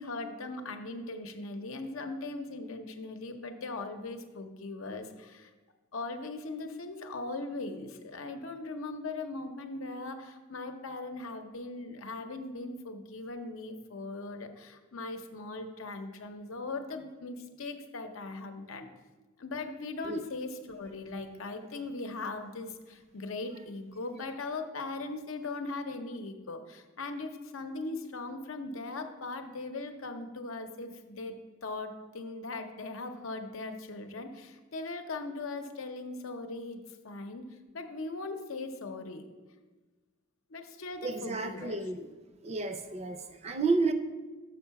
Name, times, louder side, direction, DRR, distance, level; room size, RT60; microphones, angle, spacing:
voice 1, 0.0-5.5 5.9-18.9 19.4-31.4 31.6-37.5 37.7-39.2 40.5-41.8, left 3 dB, 90° left, 6 dB, 0.7 m, -39 dB
voice 2, 41.0-42.1 42.4-43.9, right 3 dB, 30° right, 8 dB, 0.5 m, -31 dB
6.5 x 5.5 x 5.7 m, 1.3 s
head